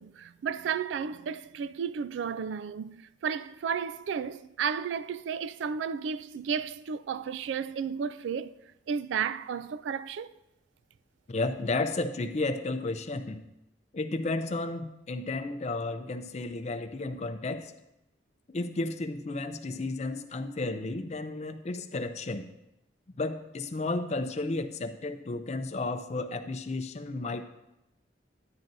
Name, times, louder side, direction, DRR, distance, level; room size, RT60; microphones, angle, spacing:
voice 1, 0.0-8.5 8.9-10.3, right 7 dB, 80° right, 0.3 m, -33 dB
voice 2, 11.3-13.4 13.9-17.7 18.5-22.5 23.2-27.4, left 2 dB, 35° left, 0.5 m, -33 dB
10.5 x 8.8 x 2.7 m
head